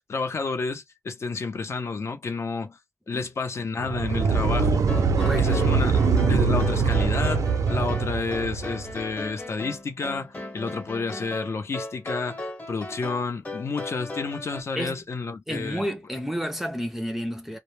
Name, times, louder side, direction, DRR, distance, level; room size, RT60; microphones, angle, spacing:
voice 1, 0.0-2.8 3.1-4.8 5.4-6.0 6.3-15.8, left 4 dB, 55° left, 0.7 m, -30 dB
sound 1, 3.8-9.0, right 5 dB, 80° right, 0.4 m, -23 dB
sound 2, 4.6-14.6, left 2 dB, 30° left, 1.0 m, -37 dB
voice 2, 5.1-5.6 14.8-15.0 15.5-17.6, equal, 5° right, 0.5 m, -31 dB
2.2 x 2.1 x 3.1 m
wide cardioid pair, 125°, 5 cm